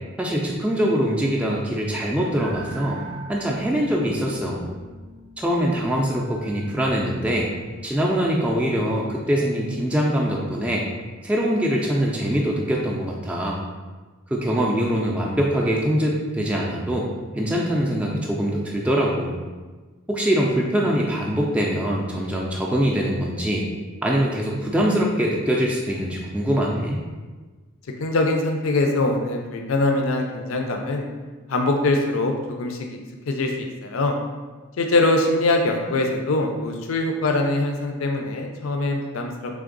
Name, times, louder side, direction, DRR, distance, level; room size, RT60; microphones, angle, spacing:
voice 1, 0.2-3.0 3.3-4.7 5.4-7.5 7.8-10.9 11.2-13.6 14.3-17.1 17.4-19.4 20.1-23.6 24.0-27.0, equal, 5° right, -3 dB, 0.3 m, -23 dB
sound 1, 2.4-9.0, right 2 dB, 75° right, 0.6 m, -44 dB
voice 2, 28.0-31.1 31.5-33.0 33.3-34.1 34.8-39.6, left 2 dB, 75° left, 3 dB, 0.4 m, -23 dB
3.5 x 3.3 x 3.8 m, 1.3 s
head